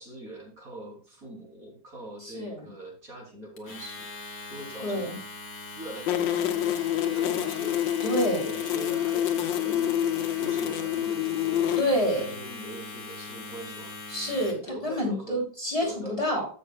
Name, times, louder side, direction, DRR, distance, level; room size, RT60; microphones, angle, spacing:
voice 1, 0.0-4.1 4.5-5.2 5.7-7.8 8.4-10.0 10.4-14.0 14.4-15.5 15.8-16.3, right 1 dB, 50° right, -2 dB, 3.6 m, -43 dB
voice 2, 2.2-2.7 4.8-5.2 8.0-8.6 11.8-12.3 14.1-14.6 14.8-16.5, equal, 20° left, -3 dB, 2.8 m, -28 dB
Domestic sounds home sounds, 3.6-14.7, left 3 dB, 55° left, 2.2 m, -41 dB
sound 1, 6.1-11.8, left 11 dB, 90° left, 1.5 m, -27 dB
15.0 x 6.4 x 2.2 m, 0.41 s
omnidirectional pair, 1.9 m